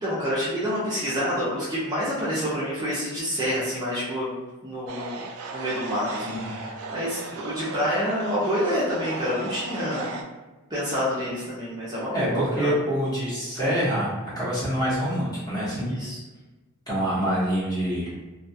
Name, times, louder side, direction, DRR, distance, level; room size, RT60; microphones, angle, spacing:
voice 1, 0.0-4.3 4.6-5.2 5.5-10.2 10.7-12.7 15.9-16.2, equal, 20° right, -9 dB, 0.5 m, -28 dB
sound 1, 4.9-10.2, right 3 dB, 80° right, 0.3 m, -36 dB
voice 2, 6.2-6.6 12.1-15.9 16.9-18.1, equal, 20° left, -9 dB, 0.9 m, -26 dB
2.2 x 2.2 x 2.6 m, 1.2 s
head